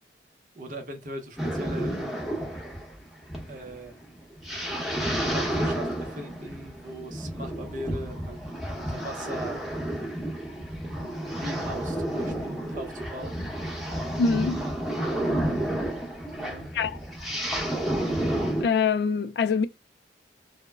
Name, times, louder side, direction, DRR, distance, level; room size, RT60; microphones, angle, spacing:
voice 1, 0.5-2.0 3.5-4.1 5.3-8.4 8.7-9.6 11.3-13.4 16.2-16.7, right 1 dB, 45° right, 0.7 m, -40 dB
sound 1, 1.4-18.6, right 1 dB, ahead, 0.8 m, -31 dB
voice 2, 14.2-14.6 16.7-17.0 18.6-19.7, left 5 dB, 65° left, 0.3 m, -24 dB
2.1 x 2.1 x 3.3 m
head